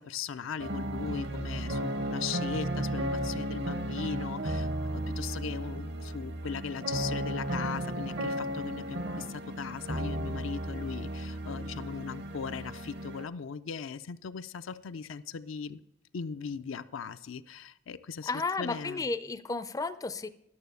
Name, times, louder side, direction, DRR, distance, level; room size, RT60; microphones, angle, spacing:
voice 1, 0.0-15.8 16.1-18.3 18.6-19.1, left 6 dB, 80° left, 11 dB, 0.5 m, -38 dB
sound 1, 0.6-13.3, right 1 dB, 60° right, 0.9 m, -34 dB
voice 2, 18.3-20.3, left 3 dB, 20° left, 13 dB, 0.4 m, -33 dB
11.5 x 6.9 x 6.8 m, 0.83 s
head